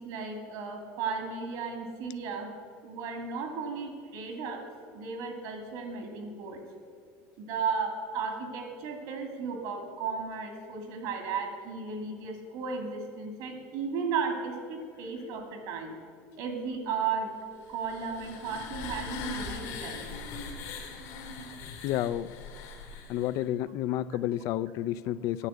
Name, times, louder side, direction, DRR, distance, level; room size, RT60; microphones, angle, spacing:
voice 1, 0.0-2.5 2.8-4.7 4.9-6.6 7.4-15.9 16.4-17.3 17.7-20.0, right 5 dB, 70° right, 4 dB, 2.4 m, -35 dB
sound 1, 17.6-23.4, left 4 dB, 80° left, 2.1 m, -40 dB
voice 2, 21.8-22.4 23.1-25.5, left 12 dB, 60° left, 17 dB, 0.3 m, -30 dB
9.7 x 6.9 x 8.1 m, 2.2 s
supercardioid pair, 125°, 7 cm